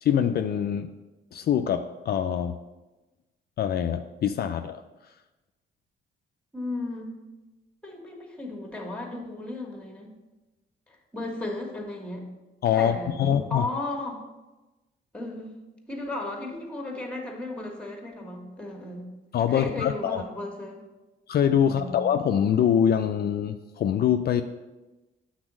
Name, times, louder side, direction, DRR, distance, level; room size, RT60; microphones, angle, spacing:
voice 1, 0.0-0.9 1.3-2.5 3.6-4.8 12.6-13.7 19.3-20.2 21.3-24.4, left 9 dB, 55° left, 8 dB, 0.4 m, -24 dB
voice 2, 6.5-7.1 7.8-10.1 10.9-12.3 12.8-14.2 15.1-15.5 15.9-19.1 19.5-20.8 21.6-22.0, left 2 dB, 5° left, 1 dB, 1.5 m, -35 dB
6.1 x 4.0 x 6.1 m, 1.1 s
cardioid pair, 90°, 20 cm